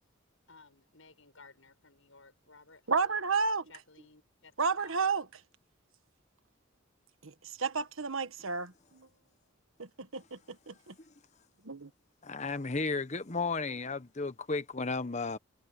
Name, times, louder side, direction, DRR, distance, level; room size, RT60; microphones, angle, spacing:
voice 1, 0.5-3.2 3.7-5.0, left 4 dB, 80° left, 7.2 m, -57 dB
voice 2, 2.9-3.7 4.6-5.2 7.2-9.1 9.8-10.9 11.6-11.9, right 5 dB, 85° right, 1.5 m, -32 dB
voice 3, 12.2-15.4, left 3 dB, 35° left, 1.1 m, -33 dB
head